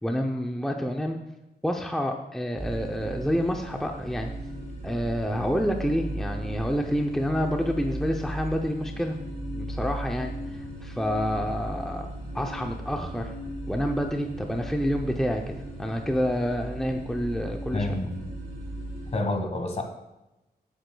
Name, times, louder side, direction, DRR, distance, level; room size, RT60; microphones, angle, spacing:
voice 1, 0.0-1.2 1.6-4.3 4.8-9.2 9.5-13.3 13.7-15.5 15.8-17.9, equal, ahead, 3 dB, 0.5 m, -28 dB
sound 1, 2.5-19.1, right 1 dB, 45° right, 3.7 m, -36 dB
voice 2, 17.7-18.2 19.1-19.8, left 2 dB, 40° left, 5 dB, 1.3 m, -28 dB
15.0 x 8.1 x 2.2 m, 0.96 s
wide cardioid pair, 155°, 17 cm